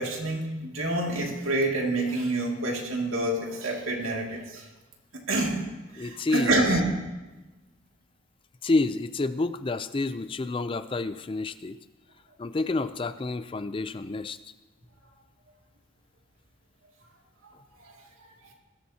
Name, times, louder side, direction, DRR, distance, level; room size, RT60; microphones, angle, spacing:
voice 1, 0.0-4.7 5.1-5.6 5.9-6.9 17.8-17.9, right 2 dB, 85° right, 0 dB, 2.3 m, -27 dB
voice 2, 6.0-6.8 8.6-11.8 12.4-14.4, left 3 dB, 25° left, 12 dB, 0.4 m, -29 dB
20.5 x 13.0 x 2.8 m, 1.1 s
head